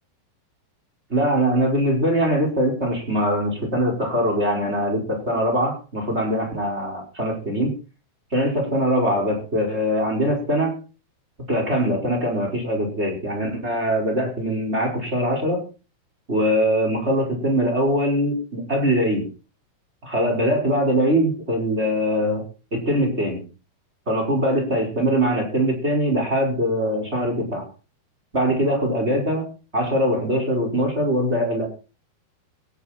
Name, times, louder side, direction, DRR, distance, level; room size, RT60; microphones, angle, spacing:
voice 1, 1.1-7.8 8.3-10.8 11.5-15.6 16.3-19.3 20.0-22.4 22.7-23.4 24.1-27.7 28.3-29.5 29.7-31.7, equal, 15° right, 2 dB, 5.1 m, -22 dB
18.5 x 13.0 x 4.4 m, 0.35 s
omnidirectional pair, 4.8 m